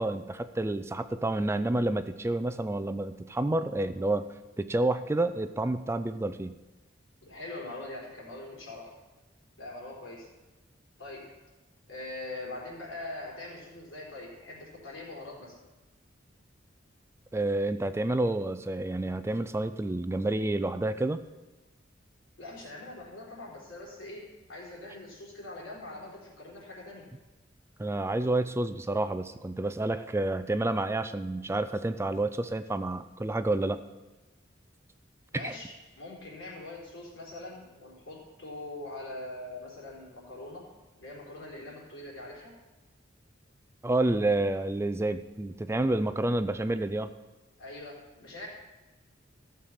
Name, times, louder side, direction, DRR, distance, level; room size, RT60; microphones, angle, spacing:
voice 1, 0.0-4.3 4.6-6.6 17.3-21.2 27.8-33.8 35.3-35.5 43.8-47.1, right 2 dB, 15° right, 11 dB, 0.4 m, -29 dB
voice 2, 7.2-8.9 9.6-10.3 11.0-11.2 11.9-15.5 22.4-27.0 35.3-40.6 41.0-42.5 47.6-48.5, left 2 dB, 80° left, -4 dB, 4.0 m, -42 dB
14.5 x 6.8 x 5.7 m, 1.1 s
head